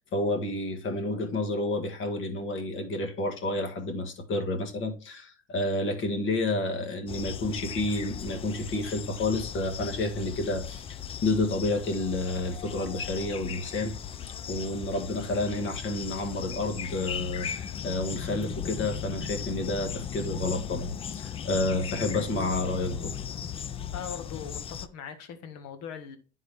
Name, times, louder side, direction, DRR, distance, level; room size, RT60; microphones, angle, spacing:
voice 1, 0.1-10.9 11.2-14.0 14.5-23.1, left 2 dB, 40° left, 1.6 m, -30 dB
sound 1, 7.1-24.9, left 8 dB, 20° left, 0.3 m, -37 dB
voice 2, 23.9-26.2, left 7 dB, 55° left, 1.5 m, -40 dB
10.0 x 4.0 x 3.3 m
supercardioid pair, 110°, 31 cm